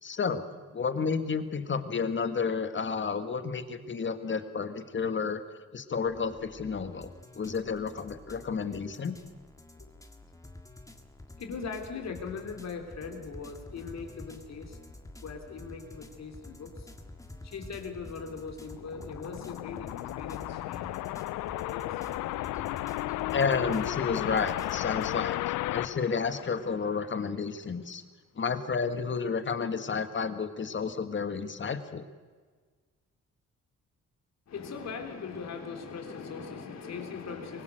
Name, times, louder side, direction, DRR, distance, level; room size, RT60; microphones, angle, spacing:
voice 1, 0.0-0.4 0.7-5.4 5.7-7.1 7.4-9.2 23.3-28.0 28.4-32.0, left 5 dB, 40° left, 9 dB, 1.9 m, -31 dB
sound 1, 6.1-25.1, left 2 dB, 10° left, 1.9 m, -49 dB
voice 2, 11.4-14.8 15.2-16.9 17.4-21.0 21.3-22.0 22.3-22.4 23.1-23.3 34.5-37.6, left 5 dB, 60° left, 5 dB, 3.6 m, -40 dB
sound 2, 18.7-27.0, left 16 dB, 80° left, 0.5 m, -34 dB
24.0 x 20.0 x 6.5 m, 1.5 s
cardioid pair, 90°, 30 cm